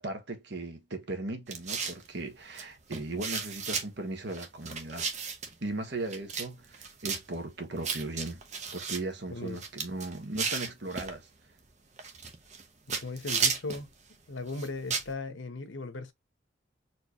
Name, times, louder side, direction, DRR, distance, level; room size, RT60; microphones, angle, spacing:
voice 1, 0.0-5.1 5.6-8.4 8.7-11.3, right 2 dB, 65° right, 1.4 m, -37 dB
sound 1, 1.5-2.1 2.5-2.6 2.9-3.9 4.3-5.5 6.1-6.5 6.7-7.2 7.8-9.0 9.5-11.1 12.0-12.6 12.9-13.8 14.5-15.1, right 5 dB, 40° right, 1.0 m, -33 dB
voice 2, 9.3-9.6 12.9-13.9 14.3-16.1, left 3 dB, 90° left, 1.0 m, -37 dB
4.5 x 3.2 x 3.0 m
head